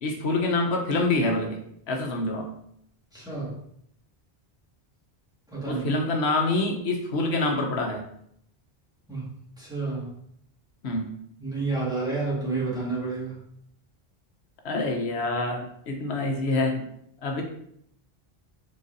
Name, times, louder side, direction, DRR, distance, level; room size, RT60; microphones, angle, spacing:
voice 1, 0.0-1.6 1.9-2.5 5.7-8.0 10.8-11.1 14.6-16.8 17.2-17.4, left 2 dB, 90° left, 3 dB, 1.0 m, -26 dB
voice 2, 3.1-3.5 5.5-5.8 9.1-10.1 11.4-13.4, right 3 dB, 5° right, -8 dB, 1.5 m, -30 dB
4.0 x 3.9 x 2.6 m, 0.70 s
omnidirectional pair, 1.0 m